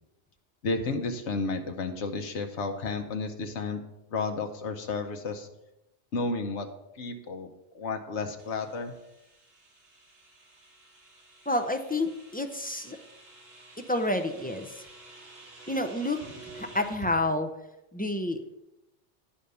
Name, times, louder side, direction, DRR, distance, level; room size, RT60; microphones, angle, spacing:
voice 1, 0.6-3.8 4.1-5.5 6.1-6.7 7.0-7.5 7.7-8.9, left 3 dB, 75° left, 4 dB, 1.2 m, -32 dB
sound 1, 8.4-17.1, right 2 dB, 70° right, 2.6 m, -50 dB
voice 2, 11.5-13.0 13.9-14.7 15.7-16.2 16.5-17.5 17.9-18.6, left 1 dB, 10° left, 5 dB, 0.4 m, -29 dB
10.0 x 5.1 x 6.7 m, 0.91 s
omnidirectional pair, 1.2 m